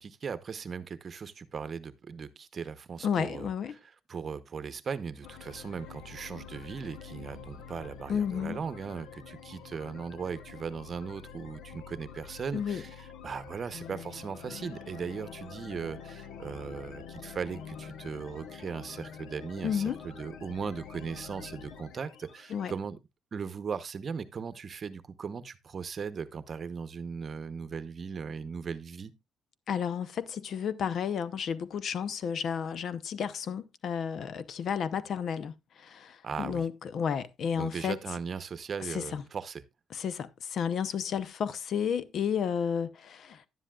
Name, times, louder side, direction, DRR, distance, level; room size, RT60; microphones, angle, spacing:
voice 1, 0.0-23.0 23.3-29.1 36.2-36.7 37.6-39.6, right 6 dB, 45° right, 0.8 m, -38 dB
voice 2, 3.0-3.7 8.1-8.6 12.5-12.8 19.6-20.0 22.5-22.7 29.7-38.0 38.9-39.2 39.9-43.5, left 7 dB, 65° left, 0.7 m, -32 dB
sound 1, 5.2-22.8, left 7 dB, 90° left, 1.0 m, -47 dB
11.0 x 10.0 x 2.4 m
cardioid pair, 90°, 0 cm